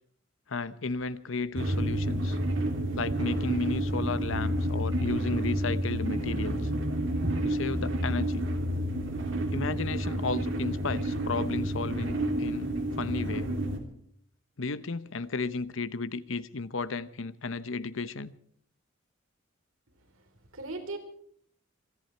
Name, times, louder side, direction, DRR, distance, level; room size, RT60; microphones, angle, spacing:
voice 1, 0.5-2.4 3.0-6.7 7.4-8.5 9.5-12.7 13.0-13.5 14.6-18.3, left 3 dB, 70° left, 0.8 m, -33 dB
sound 1, 1.6-13.8, right 1 dB, 65° right, 3.0 m, -30 dB
voice 2, 20.0-21.0, right 2 dB, 80° right, 3.5 m, -40 dB
26.5 x 11.0 x 4.5 m
head